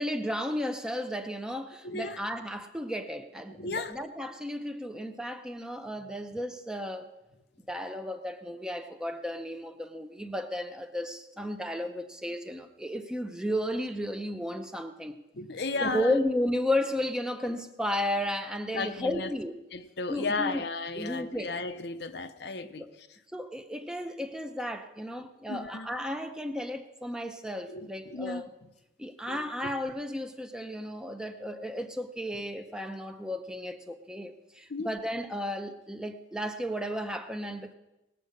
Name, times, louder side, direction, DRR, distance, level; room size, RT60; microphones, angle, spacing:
voice 1, 0.0-7.1 7.7-15.2 15.8-19.5 20.1-20.6 21.0-21.5 22.8-22.9 23.3-28.5 29.0-37.7, left 1 dB, 5° right, 0.7 m, -33 dB
voice 2, 1.8-2.2 3.5-4.0 15.3-16.2 18.7-19.3 19.7-22.8 25.5-25.9 27.7-28.5 29.3-29.5 34.7-35.0, left 3 dB, 60° left, 0.7 m, -34 dB
19.0 x 7.5 x 6.5 m
head